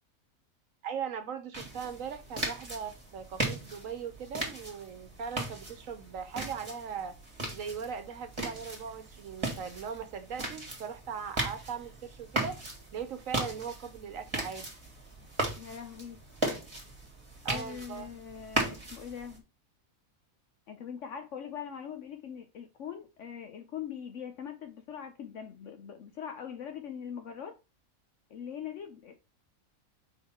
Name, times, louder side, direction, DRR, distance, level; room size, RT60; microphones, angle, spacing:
voice 1, 0.8-7.2 7.5-14.7 17.4-18.1, right 7 dB, 70° right, 1.2 m, -39 dB
sound 1, 1.5-19.4, right 2 dB, 20° right, 1.8 m, -37 dB
voice 2, 15.6-16.2 17.4-19.4 20.7-27.6 28.3-29.3, left 8 dB, 65° left, 1.0 m, -42 dB
4.7 x 3.6 x 5.5 m
omnidirectional pair, 1.5 m